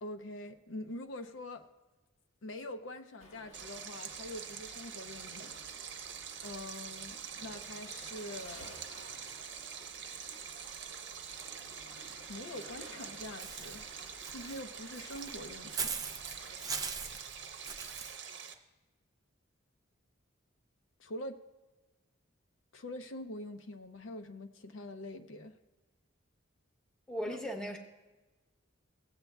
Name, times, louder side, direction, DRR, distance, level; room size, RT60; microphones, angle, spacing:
voice 1, 0.0-1.7 2.4-5.6 6.4-8.8 12.3-13.8 14.3-16.0 21.0-21.4 22.7-25.5 27.3-27.4, left 1 dB, 65° left, 7 dB, 0.5 m, -44 dB
Waves surf, 3.2-16.9, left 1 dB, 90° left, 1.2 m, -56 dB
Stream, 3.5-18.5, right 7 dB, 55° right, 0.8 m, -45 dB
Walk footsteps / Bird, 13.4-18.1, right 5 dB, 20° right, 0.3 m, -40 dB
voice 2, 27.1-27.8, equal, 5° left, 3 dB, 0.8 m, -37 dB
16.5 x 8.0 x 2.3 m, 1.2 s
head